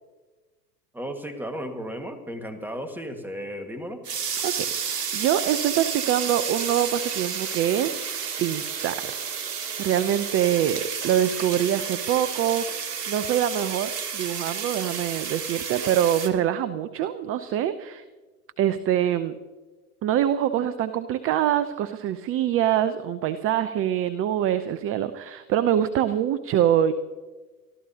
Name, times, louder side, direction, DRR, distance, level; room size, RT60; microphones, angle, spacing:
voice 1, 0.9-4.0, equal, 5° right, 6 dB, 1.7 m, -34 dB
sound 1, 4.0-16.3, right 7 dB, 75° right, 1.8 m, -31 dB
voice 2, 4.4-8.0 8.4-9.2 9.8-18.0 18.6-19.4 20.0-26.9, right 10 dB, 25° right, 13 dB, 0.6 m, -24 dB
26.0 x 13.5 x 2.8 m, 1.2 s
hypercardioid pair, 95°, 49 cm